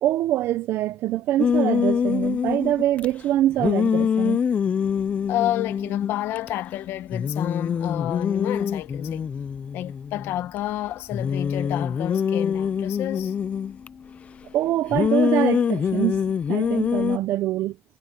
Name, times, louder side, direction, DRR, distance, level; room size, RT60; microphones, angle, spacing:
voice 1, 0.0-4.4 14.5-17.8, right 13 dB, 75° right, 0.7 m, -24 dB
sound 1, 1.4-3.1 3.6-6.5 6.8-6.9 7.1-10.6 11.1-13.9 14.9-17.2, left 7 dB, 35° left, 0.4 m, -24 dB
voice 2, 5.3-9.3 9.7-13.9, left 13 dB, 90° left, 1.3 m, -30 dB
cardioid pair, 155°, 4 cm